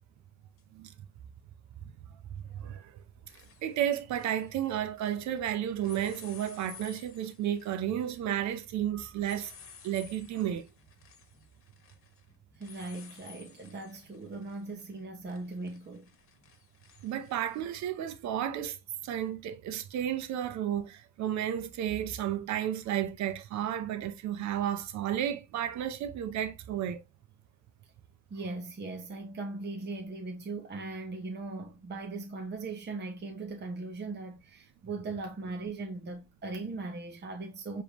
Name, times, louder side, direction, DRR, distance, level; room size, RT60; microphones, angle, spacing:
sound 1, 0.6-0.7 2.4-2.7 3.0-5.4 5.8-17.6, left 6 dB, 50° left, 1.3 m, -55 dB
voice 1, 2.5-2.9 3.6-9.5 9.8-10.7 17.0-18.8 19.0-27.0, right 10 dB, 70° right, 0.8 m, -32 dB
voice 2, 12.6-16.1 28.3-37.8, right 3 dB, 35° right, 1.1 m, -39 dB
5.1 x 3.4 x 3.0 m
supercardioid pair, 80°, 29 cm